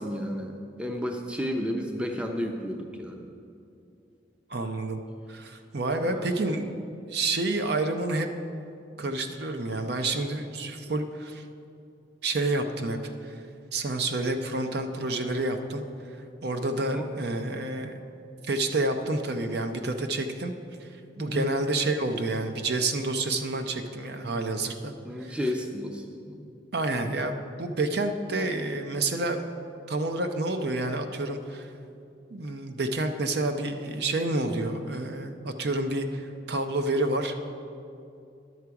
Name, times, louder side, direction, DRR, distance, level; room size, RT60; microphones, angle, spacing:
voice 1, 0.0-3.2 6.0-6.3 16.9-17.1 21.2-21.4 25.0-26.4, equal, 5° right, 3 dB, 0.5 m, -32 dB
voice 2, 4.5-5.0 5.3-8.3 9.0-11.4 12.2-13.0 13.2-13.4 13.7-15.8 16.4-18.0 18.4-20.5 20.8-20.9 21.2-24.9 25.2-25.4 26.7-29.4 29.9-31.7 32.3-37.4, right 2 dB, 55° right, 6 dB, 0.6 m, -29 dB
11.0 x 6.8 x 4.7 m, 2.6 s
head